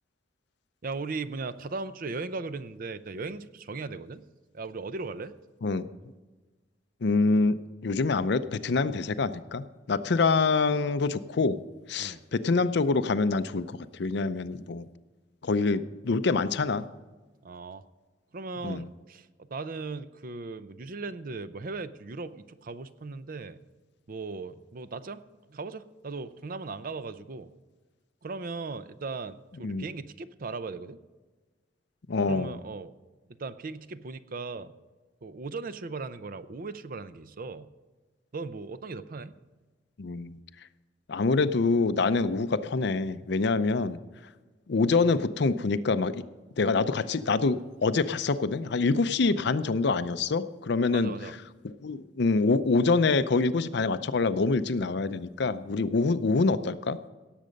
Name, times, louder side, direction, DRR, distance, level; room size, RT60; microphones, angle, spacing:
voice 1, 0.8-4.2 4.5-5.3 12.0-12.2 17.4-17.8 18.3-23.6 24.1-25.2 25.5-27.5 28.2-31.0 32.3-32.9 33.4-34.7 35.2-37.7 38.3-39.3 50.9-51.4, right 3 dB, 50° right, 13 dB, 0.6 m, -37 dB
voice 2, 7.0-11.6 11.9-14.9 15.4-16.8 18.6-18.9 29.6-29.8 32.1-32.5 40.0-40.4 41.1-44.0 44.7-46.2 46.6-51.1 51.8-57.0, left 3 dB, 65° left, 13 dB, 0.6 m, -26 dB
17.5 x 7.6 x 5.2 m, 1.3 s
head